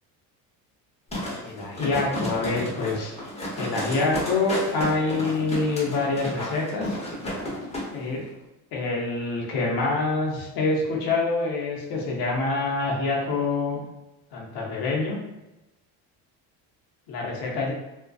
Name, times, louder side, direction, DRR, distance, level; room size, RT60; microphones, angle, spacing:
sound 1, 1.1-7.9 8.2-8.3, left 1 dB, 15° left, 0.7 m, -32 dB
voice 1, 1.4-3.1 3.6-7.0 7.9-8.2 8.7-13.8 14.3-15.2 17.1-17.7, left 3 dB, 70° left, -2 dB, 0.8 m, -26 dB
2.5 x 2.2 x 2.3 m, 0.98 s
cardioid pair, 125°, 39 cm